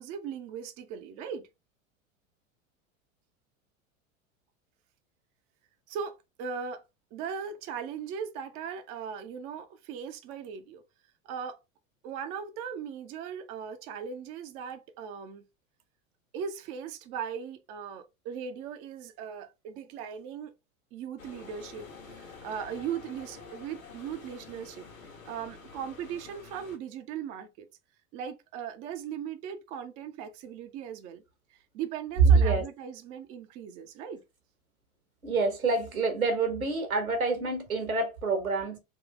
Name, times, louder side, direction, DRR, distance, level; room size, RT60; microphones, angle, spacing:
voice 1, 0.0-1.5 5.9-6.8 7.1-10.8 11.2-11.6 12.0-15.4 16.3-20.5 20.9-24.9 25.2-27.7 28.1-31.2 31.5-34.2, right 7 dB, 20° right, 0.3 m, -38 dB
sound 1, 21.2-26.8, left 4 dB, 75° left, 1.3 m, -48 dB
voice 2, 32.3-32.6 35.2-38.8, right 3 dB, 85° right, 1.2 m, -26 dB
3.5 x 2.6 x 3.5 m
figure-of-eight pair, 85°, 41 cm